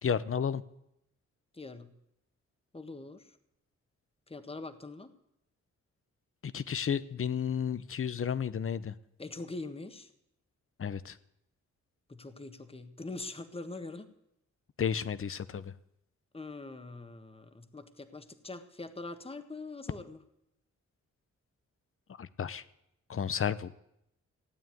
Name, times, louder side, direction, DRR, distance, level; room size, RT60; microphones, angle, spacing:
voice 1, 0.0-0.6 6.4-8.9 10.8-11.2 14.8-15.7 22.2-22.6 23.1-23.7, left 7 dB, 50° left, 16 dB, 0.9 m, -32 dB
voice 2, 1.5-1.9 2.7-3.3 4.3-5.1 9.2-10.1 12.1-14.1 16.3-20.2, left 3 dB, 20° left, 9 dB, 1.5 m, -43 dB
16.0 x 8.9 x 9.3 m, 0.81 s
cardioid pair, 70°, 29 cm